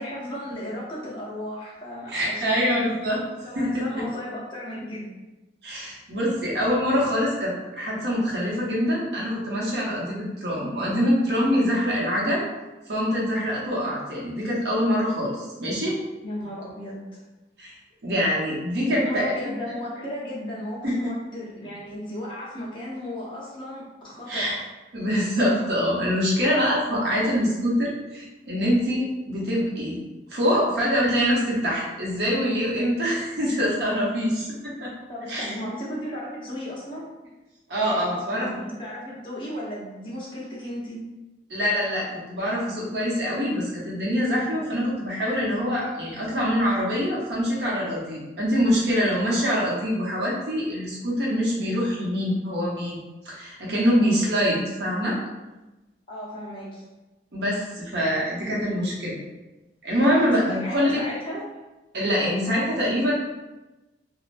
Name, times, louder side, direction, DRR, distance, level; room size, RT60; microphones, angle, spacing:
voice 1, 0.0-2.9 3.4-5.1 16.2-17.2 18.8-24.6 35.1-37.1 37.8-41.1 56.1-56.9 60.0-61.4, left 1 dB, 30° left, -6 dB, 0.7 m, -35 dB
voice 2, 2.1-3.2 3.5-3.8 5.6-12.5 12.9-16.0 17.6-17.8 18.0-19.3 20.8-21.0 24.3-24.6 24.9-30.0 30.3-34.9 35.3-35.5 37.7-38.5 41.5-53.0 53.2-55.2 57.3-59.2 59.8-61.0 61.9-63.1, equal, 65° right, -4 dB, 0.8 m, -24 dB
3.1 x 2.0 x 2.5 m, 1.1 s
head